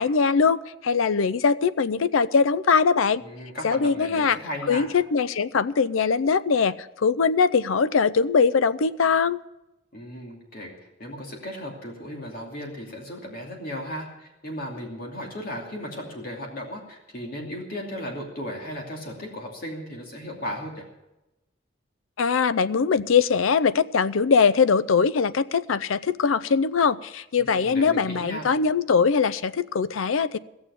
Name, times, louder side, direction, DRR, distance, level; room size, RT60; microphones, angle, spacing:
voice 1, 0.0-3.2 3.6-4.4 4.7-9.4 22.2-30.4, left 5 dB, 85° left, 17 dB, 0.5 m, -22 dB
voice 2, 3.2-4.9 9.9-10.7 11.0-20.9 27.4-28.6, equal, 45° left, 0 dB, 2.7 m, -36 dB
16.5 x 7.2 x 9.8 m, 0.96 s
head